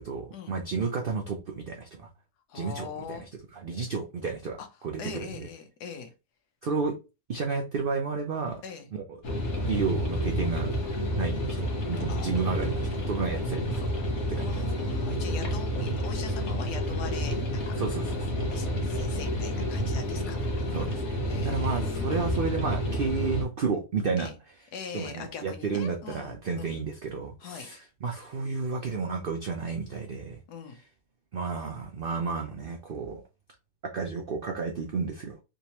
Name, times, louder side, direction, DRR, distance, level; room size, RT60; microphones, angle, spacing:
voice 1, 0.0-2.1 2.5-4.6 4.8-5.5 6.6-7.0 7.3-8.6 8.9-9.2 9.7-10.7 11.1-13.9 14.3-15.2 17.8-18.4 18.8-19.0 20.7-24.3 24.9-30.4 31.3-33.2 33.9-35.4, right 5 dB, 85° right, 0.5 m, -32 dB
voice 2, 2.5-3.2 4.6-4.7 5.0-6.1 8.6-8.9 11.8-12.8 14.1-17.7 18.5-20.4 20.6-20.8 21.2-22.4 24.2-24.4 24.7-26.8 27.4-27.7 30.5-30.8, left 6 dB, 80° left, 1.4 m, -42 dB
sound 1, 9.2-23.4, equal, 50° left, 1.2 m, -29 dB
3.5 x 3.0 x 2.8 m
omnidirectional pair, 1.7 m